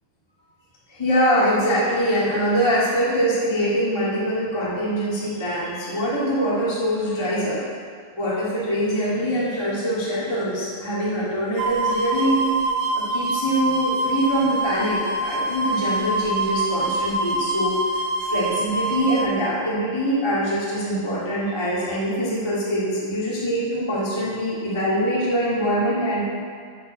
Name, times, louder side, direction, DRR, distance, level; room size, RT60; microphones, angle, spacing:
voice 1, 0.9-7.6 8.2-12.4 12.9-17.8 18.2-26.3, equal, 20° left, -8 dB, 0.7 m, -23 dB
sound 1, 11.6-19.3, right 2 dB, 80° right, 1.7 m, -25 dB
7.7 x 6.5 x 7.6 m, 2.1 s
omnidirectional pair, 4.2 m